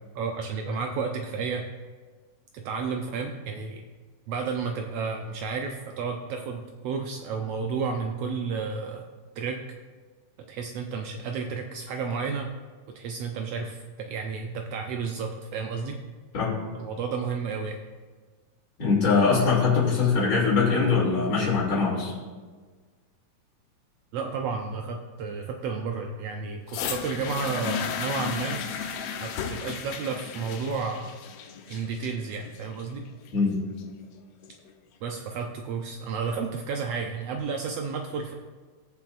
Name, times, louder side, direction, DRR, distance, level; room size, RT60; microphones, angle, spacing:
voice 1, 0.1-1.6 2.5-3.8 4.3-9.1 9.3-9.6 10.4-12.5 12.9-16.0 16.7-17.8 24.1-28.6 29.2-31.1 31.7-33.1 35.0-38.3, right 5 dB, 85° right, 3 dB, 1.4 m, -32 dB
voice 2, 18.8-22.1 33.3-33.6, left 4 dB, 50° left, -9 dB, 3.9 m, -22 dB
sound 1, 26.7-34.7 35.5-35.6, left 7 dB, 80° left, 1.4 m, -35 dB
20.0 x 7.0 x 2.6 m, 1.4 s
omnidirectional pair, 3.6 m